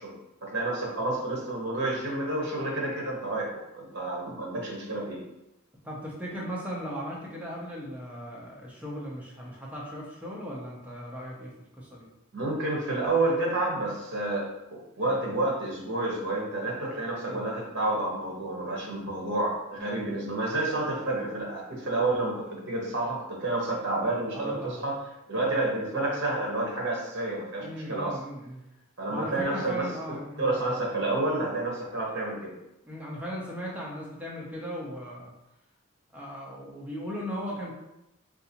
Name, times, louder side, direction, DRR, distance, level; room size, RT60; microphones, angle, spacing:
voice 1, 0.0-5.2 12.3-28.2 29.0-32.6, right 2 dB, 55° right, -1 dB, 0.9 m, -30 dB
voice 2, 5.8-12.1 17.3-17.5 24.3-24.9 25.4-25.5 27.6-28.6 29.1-30.7 32.8-35.3 36.1-37.7, equal, 5° right, -5 dB, 0.6 m, -37 dB
3.9 x 2.4 x 2.8 m, 0.89 s
head